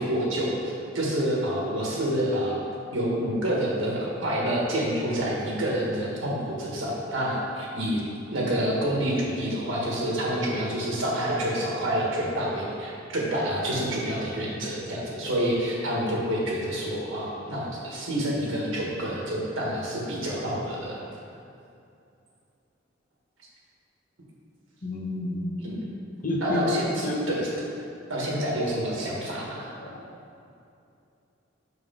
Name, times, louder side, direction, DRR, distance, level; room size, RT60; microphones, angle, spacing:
voice 1, 0.0-2.6 2.9-8.0 8.3-21.1 25.6-25.9 26.4-27.4 28.1-29.7, right 1 dB, 90° right, -4 dB, 1.5 m, -28 dB
voice 2, 24.8-25.6 26.2-26.7 27.0-27.3 29.8-30.0, left 2 dB, 45° left, -1 dB, 0.9 m, -29 dB
6.3 x 4.8 x 3.7 m, 2.6 s
head